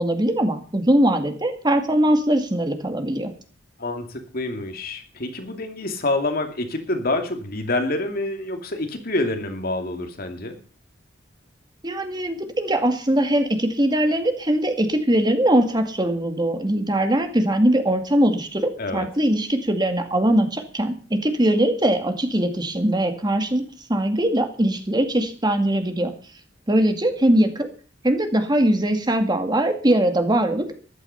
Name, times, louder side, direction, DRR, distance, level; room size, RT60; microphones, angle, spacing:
voice 1, 0.0-3.3 11.8-23.6 23.9-26.1 26.7-27.7 28.0-30.7, right 1 dB, 25° right, 6 dB, 2.0 m, -21 dB
voice 2, 3.8-10.6 18.8-19.1, left 2 dB, 55° left, 5 dB, 2.5 m, -27 dB
14.5 x 11.5 x 5.7 m, 0.39 s
head